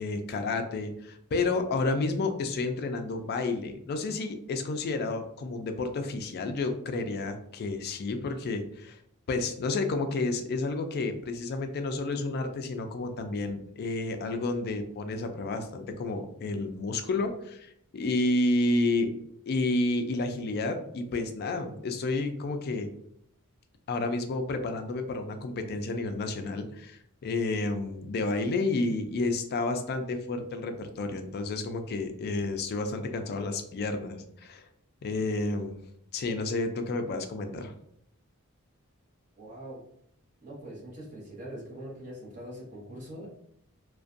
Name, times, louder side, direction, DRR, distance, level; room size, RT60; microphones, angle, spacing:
voice 1, 0.0-9.0 9.3-19.1 19.5-22.9 23.9-34.6 35.0-35.8 36.1-37.7, left 2 dB, 45° left, 7 dB, 0.3 m, -30 dB
voice 2, 39.4-39.8 40.4-43.3, right 1 dB, 35° right, -5 dB, 0.9 m, -42 dB
2.5 x 2.2 x 2.4 m, 0.70 s
head